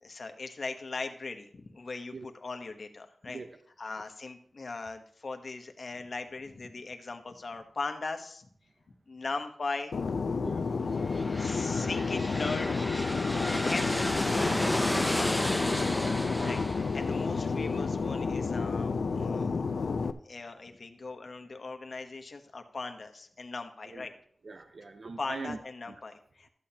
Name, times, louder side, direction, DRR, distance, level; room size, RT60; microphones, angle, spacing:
voice 1, 0.0-3.4 3.8-8.5 9.1-10.3 11.4-13.2 13.6-14.6 14.9-19.6 20.2-24.1 25.2-26.5, left 3 dB, 60° left, 6 dB, 1.0 m, -39 dB
Fixed-wing aircraft airplane, 9.9-20.1, left 4 dB, 80° left, 0.4 m, -31 dB
voice 2, 10.4-10.8 16.4-16.7 23.9-24.1 24.4-25.6 25.9-26.0, right 4 dB, 65° right, 7 dB, 0.6 m, -42 dB
sound 1, 11.0-18.7, left 1 dB, 10° left, 0.5 m, -33 dB
13.0 x 8.5 x 2.9 m, 0.63 s
wide cardioid pair, 70°, 0 cm